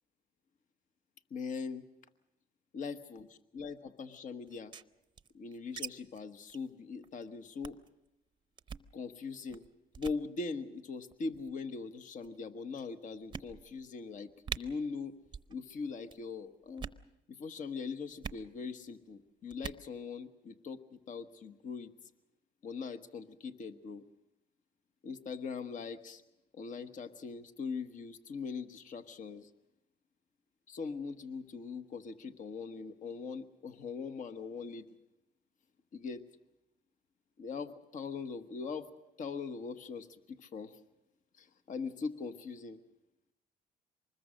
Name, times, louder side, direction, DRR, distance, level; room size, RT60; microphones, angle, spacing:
voice 1, 1.3-1.8 2.7-3.3 3.5-4.7 5.3-7.8 8.9-9.6 10.0-15.1 15.5-16.9 17.3-21.9 22.6-24.0 25.0-26.2 26.5-29.5 30.7-34.9 35.9-36.2 37.4-38.9 39.2-40.8 41.4-42.8, left 5 dB, 50° left, 10 dB, 1.2 m, -41 dB
sound 1, 4.5-5.9 6.1-6.2 6.5-6.7 7.0-7.2 7.6-7.9 8.6-8.9 9.5-9.7 9.9-10.2 11.1-11.5 12.2-12.3 12.8-12.9 13.3-13.9 14.1-14.2 14.4-14.6 15.3-15.5 15.8-16.2 16.7-17.0 18.2-18.4 19.5-19.8, right 6 dB, 25° right, 0.7 m, -43 dB
24.5 x 20.5 x 6.3 m, 0.90 s
cardioid pair, 110°, 17 cm